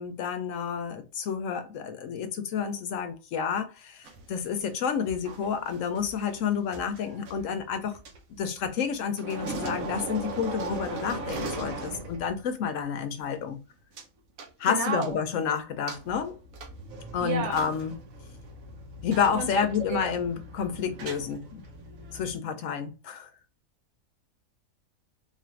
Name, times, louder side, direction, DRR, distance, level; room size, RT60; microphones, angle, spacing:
voice 1, 0.0-8.0 8.3-13.6 14.6-16.3 17.1-18.0 19.0-21.6 22.1-23.3, left 7 dB, 75° left, 1.0 m, -30 dB
sound 1, 4.0-8.9 9.2-12.5 12.8-12.9 14.0-14.1 14.4-15.4 15.9-22.3, right 2 dB, 85° right, 1.2 m, -39 dB
voice 2, 14.7-15.2 17.2-17.6 19.3-20.1, right 4 dB, 65° right, 0.9 m, -31 dB
3.9 x 2.5 x 3.1 m
omnidirectional pair, 1.4 m